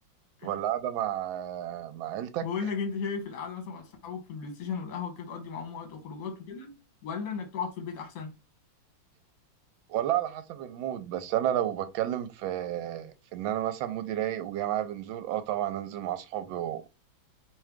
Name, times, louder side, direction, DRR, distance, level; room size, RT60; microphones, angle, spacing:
voice 1, 0.4-2.5 9.9-16.9, right 12 dB, 80° right, 1.3 m, -31 dB
voice 2, 2.4-6.7 7.0-8.3, left 5 dB, 60° left, 1.5 m, -35 dB
3.7 x 3.2 x 3.4 m
omnidirectional pair, 2.2 m